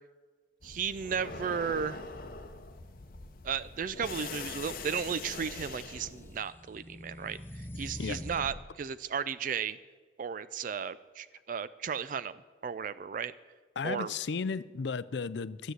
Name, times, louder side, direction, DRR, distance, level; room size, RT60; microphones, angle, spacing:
sound 1, 0.6-6.4, left 4 dB, 50° left, 0.8 m, -43 dB
voice 1, 0.6-2.0 3.4-9.8 10.2-12.3 12.6-13.3 13.8-14.1, right 7 dB, 45° right, 15 dB, 0.3 m, -34 dB
sound 2, 5.9-8.7, left 1 dB, 10° left, 0.6 m, -44 dB
voice 2, 13.8-15.7, left 5 dB, 65° left, 17 dB, 0.4 m, -34 dB
12.5 x 8.1 x 7.9 m, 1.4 s
head